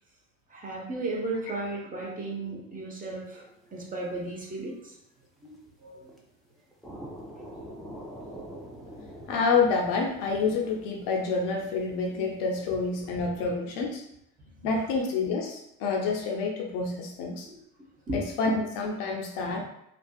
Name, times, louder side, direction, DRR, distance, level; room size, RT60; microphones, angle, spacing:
voice 1, 0.5-5.0 5.4-6.1 12.7-12.8 13.4-13.5 14.6-14.7 17.5-17.6 18.1-18.2 19.4-19.6, right 2 dB, 20° right, -3 dB, 0.8 m, -35 dB
sound 1, 3.7-3.8 4.0-4.1 4.7-4.8 5.4-5.7 6.1-6.2 6.7-13.0, right 1 dB, ahead, 0.3 m, -45 dB
voice 2, 9.3-14.0 14.6-17.5 18.1-19.6, left 4 dB, 55° left, 1 dB, 0.5 m, -28 dB
2.5 x 2.3 x 2.2 m, 0.78 s
figure-of-eight pair, 60°, 40 cm